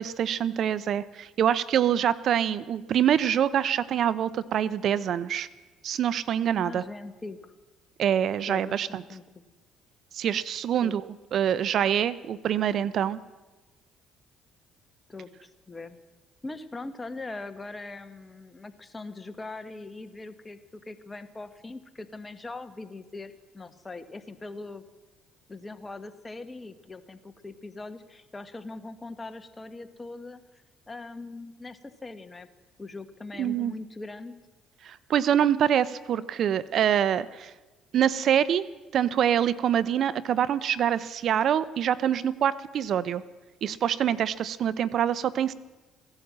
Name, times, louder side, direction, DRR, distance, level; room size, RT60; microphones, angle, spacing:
voice 1, 0.0-5.5 5.8-6.8 8.0-9.0 10.1-13.2 33.4-33.7 34.8-37.5 37.9-38.7 38.9-43.2 43.6-45.5, right 9 dB, 60° right, 17 dB, 0.6 m, -25 dB
voice 2, 6.6-7.5 8.5-9.2 10.8-11.0 15.1-16.0 16.4-24.8 25.5-32.5 32.8-34.3, left 3 dB, 20° left, 10 dB, 1.3 m, -41 dB
16.5 x 11.5 x 7.4 m, 1.2 s
supercardioid pair, 70°, 0 cm